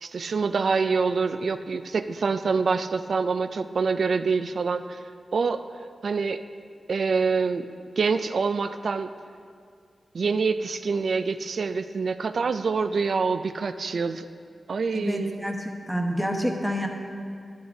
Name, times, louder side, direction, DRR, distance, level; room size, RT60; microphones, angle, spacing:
voice 1, 0.0-5.0 5.3-5.6 6.0-6.4 6.9-7.7 8.0-9.1 10.1-14.2 14.7-15.5, right 4 dB, 75° right, 10 dB, 0.3 m, -26 dB
voice 2, 14.9-16.9, equal, ahead, 2 dB, 1.1 m, -28 dB
14.0 x 10.0 x 2.7 m, 2.2 s
wide cardioid pair, 75°, 0 cm